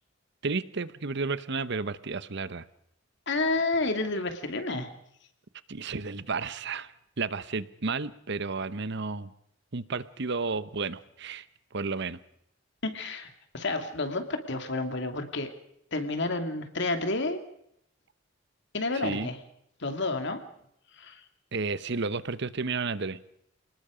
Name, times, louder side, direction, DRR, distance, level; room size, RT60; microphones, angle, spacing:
voice 1, 0.4-2.6 5.7-6.9 7.2-9.3 9.7-11.5 11.7-12.2 18.9-19.3 21.5-23.2, right 4 dB, 60° right, 15 dB, 1.0 m, -32 dB
voice 2, 3.3-4.9 12.8-15.5 15.9-17.4 18.7-19.4 19.8-20.4 21.0-21.2, left 2 dB, 65° left, 7 dB, 2.5 m, -30 dB
28.5 x 19.5 x 5.1 m, 0.72 s
head